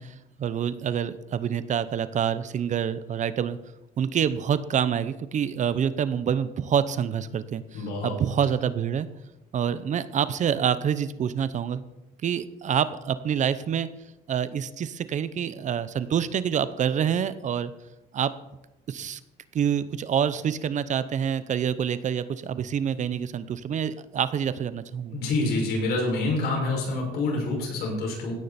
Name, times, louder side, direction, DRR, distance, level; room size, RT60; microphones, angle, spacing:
voice 1, 0.0-3.6 4.0-9.1 9.5-11.8 12.2-13.9 14.3-17.7 18.1-18.3 18.9-19.2 19.5-25.2, right 8 dB, 45° right, 14 dB, 0.8 m, -27 dB
voice 2, 7.7-8.1 25.1-28.3, left 2 dB, 70° left, -1 dB, 6.1 m, -27 dB
16.5 x 10.0 x 4.3 m, 0.96 s
cardioid pair, 110°, 17 cm